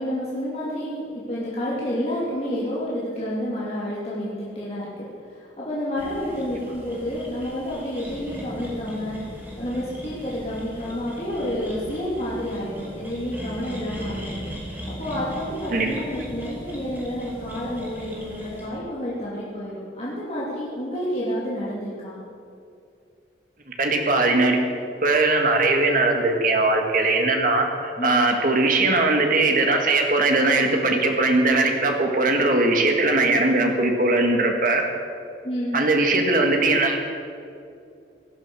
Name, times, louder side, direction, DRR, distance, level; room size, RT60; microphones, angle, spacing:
voice 1, 0.0-9.2 9.6-14.4 14.7-22.2 28.0-28.3 35.4-35.8, equal, 35° left, -8 dB, 2.7 m, -29 dB
sound 1, 6.0-18.7, equal, 10° right, 2.5 m, -38 dB
voice 2, 23.8-24.6 25.0-34.8 35.7-37.0, right 2 dB, 45° right, 3 dB, 1.9 m, -20 dB
18.0 x 10.5 x 6.2 m, 2.5 s
head